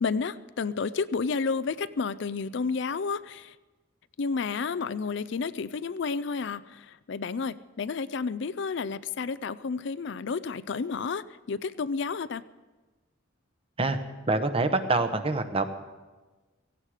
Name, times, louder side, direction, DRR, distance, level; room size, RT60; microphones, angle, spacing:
voice 1, 0.0-3.5 4.2-12.4, left 5 dB, 60° left, 15 dB, 0.5 m, -31 dB
voice 2, 14.3-15.7, right 3 dB, 30° right, 8 dB, 1.0 m, -25 dB
17.0 x 16.5 x 5.0 m, 1.2 s
head